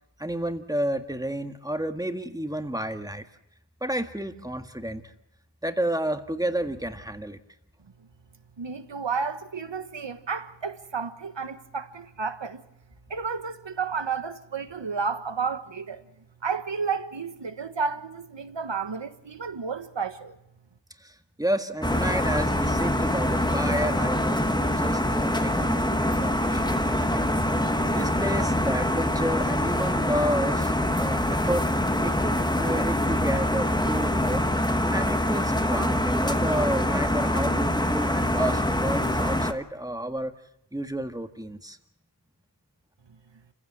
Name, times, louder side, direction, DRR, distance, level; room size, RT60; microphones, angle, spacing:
voice 1, 0.2-3.3 3.8-5.0 5.6-7.4 21.0-31.7 32.0-34.4 34.9-40.3 40.7-41.8, right 1 dB, 10° right, 1.8 m, -31 dB
voice 2, 8.6-12.6 13.1-16.0 16.4-20.4, right 5 dB, 75° right, 1.4 m, -31 dB
sound 1, 21.8-39.5, left 1 dB, 10° left, 1.4 m, -24 dB
28.0 x 16.0 x 7.5 m
wide cardioid pair, 45°, 44 cm